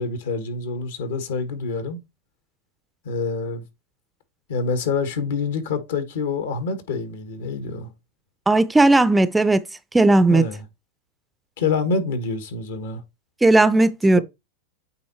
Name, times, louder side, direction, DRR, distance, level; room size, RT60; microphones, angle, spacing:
voice 1, 0.0-2.0 3.0-3.6 4.5-7.9 10.3-10.6 11.6-13.0, left 4 dB, 80° left, 1.6 m, -26 dB
voice 2, 8.5-9.6 9.9-10.4 13.4-14.2, right 2 dB, 10° right, 0.4 m, -16 dB
8.7 x 3.0 x 4.3 m
hypercardioid pair, 125°, 0 cm